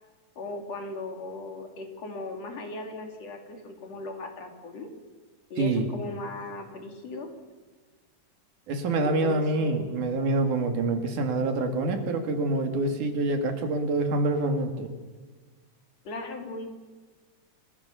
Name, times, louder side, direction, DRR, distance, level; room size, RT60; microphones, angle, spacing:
voice 1, 0.4-4.9 5.5-7.3 9.0-9.9 16.0-16.7, left 2 dB, 60° left, 4 dB, 3.8 m, -38 dB
voice 2, 5.6-5.9 8.7-14.9, right 2 dB, 85° right, 6 dB, 3.8 m, -26 dB
29.5 x 15.5 x 7.0 m, 1.4 s
omnidirectional pair, 3.5 m